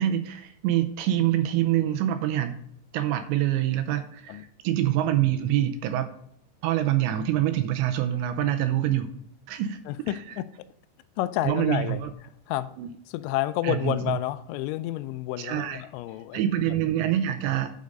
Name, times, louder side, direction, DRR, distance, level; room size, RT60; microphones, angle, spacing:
voice 1, 0.0-2.6 2.9-6.1 6.6-9.1 9.5-9.8 10.1-10.2 11.5-12.1 12.8-12.9 13.6-14.2 15.4-15.8 16.3-17.7, right 12 dB, 80° right, 8 dB, 2.8 m, -25 dB
voice 2, 9.9-10.4 11.2-12.0 12.5-12.7 13.1-16.9, left 14 dB, 85° left, 13 dB, 2.8 m, -30 dB
10.5 x 5.1 x 5.2 m, 0.68 s
omnidirectional pair, 5.5 m